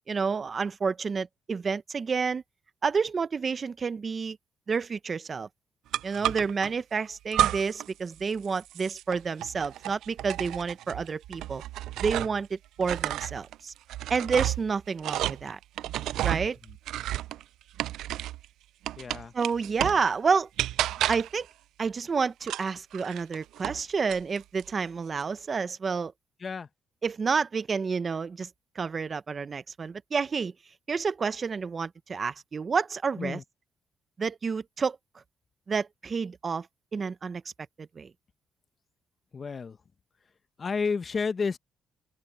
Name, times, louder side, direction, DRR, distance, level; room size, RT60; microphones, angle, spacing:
voice 1, 0.1-2.4 2.8-4.4 4.7-5.5 6.0-11.6 12.0-13.7 14.1-15.6 16.2-16.6 19.3-20.5 21.1-21.5 21.8-26.1 27.0-28.5 28.8-30.5 30.9-33.4 34.2-35.0 35.7-36.7 36.9-37.4 37.8-38.1, right 5 dB, 40° right, 0.8 m, -29 dB
sound 1, 5.9-6.7 7.3-7.9 8.2-12.5 12.8-18.4 18.8-20.1 20.6-21.4 22.4-23.8 24.1-24.7, right 13 dB, 85° right, 0.4 m, -31 dB
voice 2, 19.0-19.3 20.9-21.1 26.4-26.7 33.2-33.4 39.3-39.8 40.6-41.6, left 5 dB, 40° left, 1.2 m, -31 dB
open air
cardioid pair, 90°, 0 cm